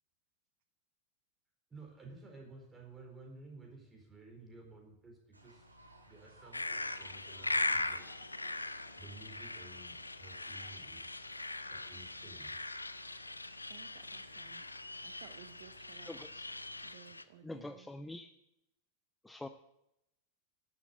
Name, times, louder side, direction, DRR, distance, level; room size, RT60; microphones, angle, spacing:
voice 1, 1.7-5.7 6.1-8.1 8.9-11.3 11.7-12.6, right 3 dB, 15° right, 1 dB, 4.2 m, -54 dB
sound 1, 5.3-16.9, right 1 dB, 80° right, 2.0 m, -60 dB
sound 2, 6.5-17.2, left 2 dB, 85° left, 0.7 m, -40 dB
voice 2, 13.7-14.7 15.0-16.2 16.8-17.9, right 10 dB, 50° right, 9 dB, 0.8 m, -57 dB
voice 3, 15.8-16.5 17.4-18.3 19.2-19.5, left 2 dB, 5° left, 9 dB, 0.6 m, -46 dB
12.0 x 7.7 x 8.6 m, 0.85 s
figure-of-eight pair, 90°, 0 cm